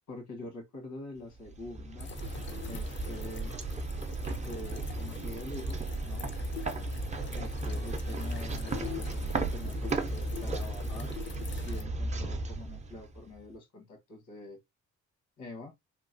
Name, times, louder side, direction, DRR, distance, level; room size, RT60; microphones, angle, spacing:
voice 1, 0.1-2.2 2.6-3.5 4.4-6.3 7.3-11.1 11.6-14.6 15.4-15.7, left 2 dB, 75° left, 1.3 m, -45 dB
sound 1, 1.4-13.4, right 2 dB, 25° right, 0.5 m, -35 dB
sound 2, 2.0-11.8, left 6 dB, 40° left, 0.5 m, -44 dB
3.0 x 2.3 x 2.5 m
cardioid pair, 90°, 30 cm